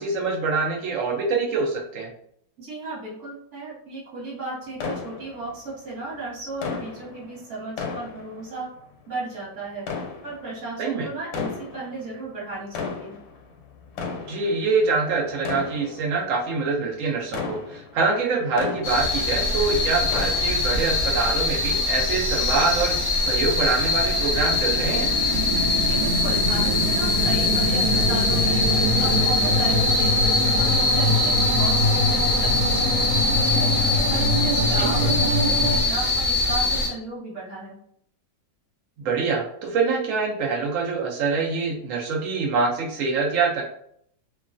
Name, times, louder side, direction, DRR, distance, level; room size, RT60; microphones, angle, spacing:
voice 1, 0.0-2.1 10.8-11.1 14.3-25.1 34.7-35.1 39.0-43.6, right 4 dB, 90° right, -1 dB, 0.6 m, -25 dB
voice 2, 2.6-8.7 9.1-9.9 10.2-13.1 25.8-28.7 29.0-33.7 34.1-37.8, right 2 dB, 45° right, -6 dB, 1.3 m, -35 dB
sound 1, 4.8-5.9 6.6-8.9 9.7-10.8 11.2-12.2 12.6-19.5 19.8-21.0 21.4-21.5 22.1-22.2, left 5 dB, 85° left, 1.3 m, -35 dB
sound 2, 18.8-36.9, left 3 dB, 60° left, 0.9 m, -23 dB
sound 3, 21.2-35.8, equal, 70° right, 1.3 m, -25 dB
3.0 x 2.2 x 2.5 m, 0.68 s
omnidirectional pair, 2.0 m